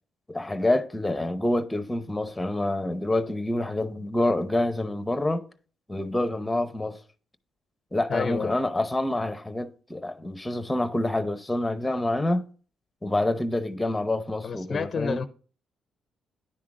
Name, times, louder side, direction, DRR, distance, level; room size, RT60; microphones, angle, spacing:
voice 1, 0.3-5.5 5.9-7.0 7.9-12.5 13.0-15.2, left 1 dB, 10° left, 0.7 m, -27 dB
voice 2, 8.1-8.6 14.4-15.3, left 5 dB, 45° left, 0.5 m, -29 dB
10.0 x 3.8 x 4.8 m
cardioid pair, 90°, 0 cm